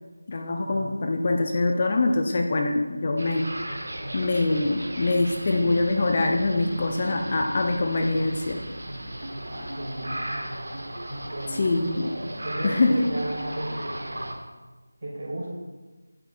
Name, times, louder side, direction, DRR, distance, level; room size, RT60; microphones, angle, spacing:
voice 1, 0.3-3.5 4.1-8.6 11.5-12.1 12.6-13.1, left 2 dB, 30° left, 3 dB, 0.5 m, -24 dB
sound 1, 3.2-14.3, right 1 dB, 55° right, 1.2 m, -35 dB
voice 2, 9.5-10.2 11.0-11.6 12.0-14.0 15.0-15.5, right 1 dB, 35° right, -5 dB, 2.6 m, -35 dB
8.9 x 7.9 x 2.5 m, 1.2 s
figure-of-eight pair, 165°, 0 cm